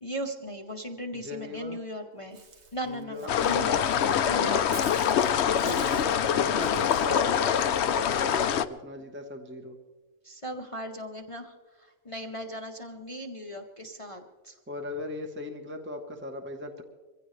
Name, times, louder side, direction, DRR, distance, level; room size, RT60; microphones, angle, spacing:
voice 1, 0.0-2.4 2.7-3.8 4.3-4.6 5.4-6.1 10.2-14.5, equal, 30° left, 3 dB, 0.9 m, -37 dB
voice 2, 1.1-1.8 2.8-3.8 5.4-9.7 14.7-16.8, left 1 dB, 10° right, 4 dB, 1.0 m, -38 dB
Walk footsteps / Bird, 2.3-7.1, right 4 dB, 60° right, 1.7 m, -48 dB
sound 1, 3.3-8.6, left 8 dB, 65° left, 0.9 m, -25 dB
23.5 x 16.0 x 3.3 m, 1.3 s
omnidirectional pair, 1.3 m